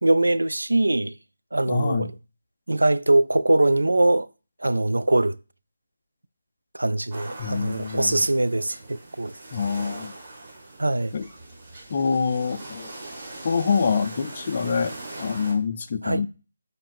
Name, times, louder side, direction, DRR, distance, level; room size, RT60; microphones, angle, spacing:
voice 1, 0.0-1.1 1.5-2.1 2.7-4.3 4.6-5.4 6.7-9.3 10.8-11.1 16.0-16.2, right 2 dB, 90° right, 0.3 m, -22 dB
voice 2, 1.7-2.1 7.4-8.2 9.5-10.1 11.1-11.3 11.9-12.9 13.4-16.3, left 5 dB, 35° left, 0.3 m, -26 dB
sound 1, 7.1-15.5, right 2 dB, 30° right, 1.8 m, -41 dB
4.2 x 2.6 x 4.6 m
figure-of-eight pair, 165°, 0 cm